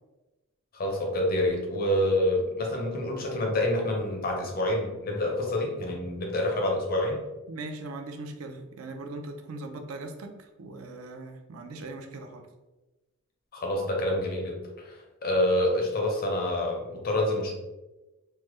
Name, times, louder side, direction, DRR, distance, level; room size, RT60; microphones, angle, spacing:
voice 1, 0.7-7.2 13.5-17.5, left 1 dB, 45° left, 0 dB, 0.7 m, -27 dB
voice 2, 7.5-12.5, right 2 dB, 85° right, 5 dB, 0.4 m, -40 dB
3.2 x 2.1 x 3.0 m, 1.1 s
head